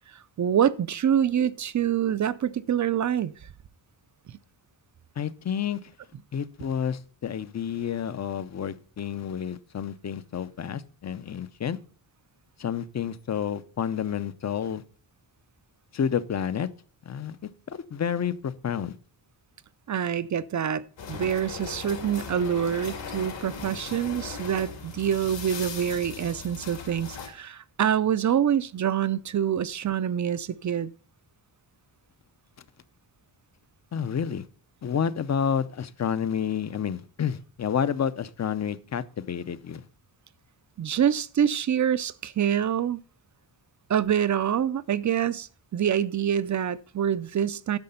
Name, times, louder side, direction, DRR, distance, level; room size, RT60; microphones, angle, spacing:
voice 1, 0.4-3.3 19.9-30.9 40.8-43.0 43.9-47.8, right 9 dB, 45° right, 0.5 m, -26 dB
voice 2, 5.2-5.8 6.3-11.8 12.6-14.8 15.9-16.7 17.1-17.4 17.7-18.9 33.9-34.4 34.8-39.8, left 8 dB, 40° left, 0.6 m, -29 dB
sound 1, 21.0-27.3, left 5 dB, 75° left, 2.4 m, -38 dB
10.5 x 6.7 x 5.5 m
wide cardioid pair, 155°, 44 cm